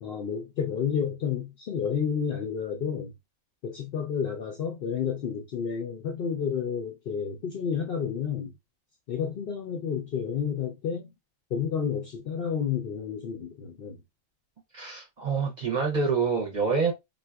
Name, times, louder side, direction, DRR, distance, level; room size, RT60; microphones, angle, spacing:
voice 1, 0.0-3.1 3.6-8.5 9.1-11.1 11.5-14.0, left 7 dB, 60° left, 0.6 m, -30 dB
voice 2, 14.7-16.9, right 5 dB, 40° right, 0.7 m, -26 dB
3.8 x 2.5 x 2.2 m
omnidirectional pair, 1.4 m